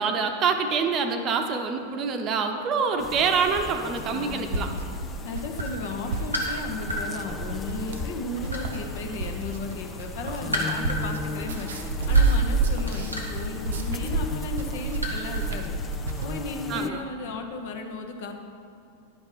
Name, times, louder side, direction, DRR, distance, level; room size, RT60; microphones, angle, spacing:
voice 1, 0.0-4.7 16.7-17.0, right 5 dB, 35° right, 5 dB, 0.8 m, -26 dB
sound 1, 3.0-16.9, left 5 dB, 20° left, 0.3 m, -38 dB
sound 2, 3.9-16.3, right 3 dB, 65° right, 0.7 m, -29 dB
voice 2, 4.0-4.8 5.2-11.7 12.1-15.8 16.2-18.3, left 3 dB, 55° left, 4 dB, 0.9 m, -35 dB
sound 3, 5.6-7.1 7.8-9.4 9.7-15.5 15.8-16.0, left 1 dB, 90° left, 1.4 m, -33 dB
11.0 x 5.1 x 5.5 m, 2.6 s
figure-of-eight pair, 90°, 0 cm